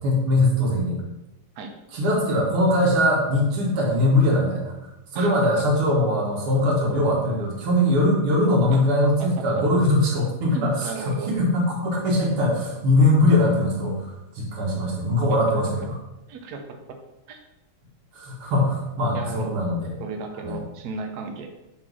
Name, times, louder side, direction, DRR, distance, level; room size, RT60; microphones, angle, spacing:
voice 1, 0.0-1.0 1.9-16.0 18.1-19.9 20.4-20.6, left 1 dB, 85° right, -3 dB, 2.4 m, -21 dB
voice 2, 10.5-11.3 11.9-12.0 16.3-16.8 17.3-17.4 19.1-19.6 20.0-21.5, right 4 dB, 60° right, 4 dB, 1.2 m, -34 dB
5.8 x 4.4 x 6.1 m, 0.95 s
omnidirectional pair, 2.4 m